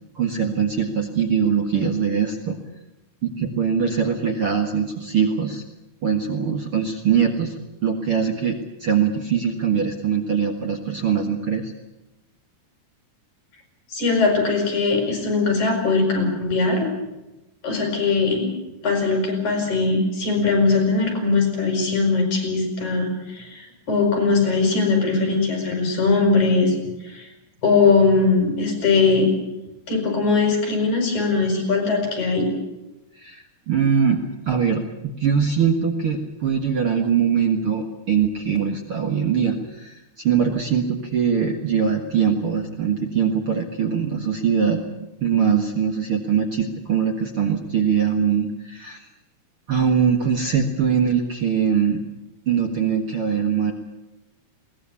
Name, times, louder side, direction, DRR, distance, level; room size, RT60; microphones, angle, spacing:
voice 1, 0.2-2.6 3.2-5.6 6.0-7.5 7.8-11.7 33.2-34.2 34.5-34.8 35.2-49.1 49.7-52.0 52.5-53.7, right 7 dB, 50° right, 4 dB, 2.2 m, -22 dB
voice 2, 13.9-16.9 17.6-18.5 18.8-26.7 27.0-27.3 27.6-29.3 29.9-32.5, left 4 dB, 60° left, 3 dB, 7.5 m, -20 dB
21.5 x 19.0 x 8.4 m, 0.97 s
omnidirectional pair, 3.7 m